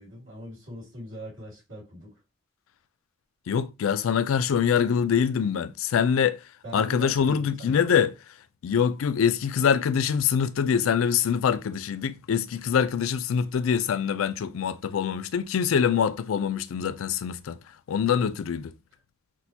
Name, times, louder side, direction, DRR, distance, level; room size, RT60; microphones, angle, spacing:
voice 1, 0.0-2.2 6.6-8.0, equal, 75° right, 2.2 m, -41 dB
voice 2, 3.5-6.4 6.7-8.1 8.6-17.6 17.9-18.7, left 7 dB, 90° left, 0.4 m, -24 dB
6.1 x 2.2 x 2.7 m
head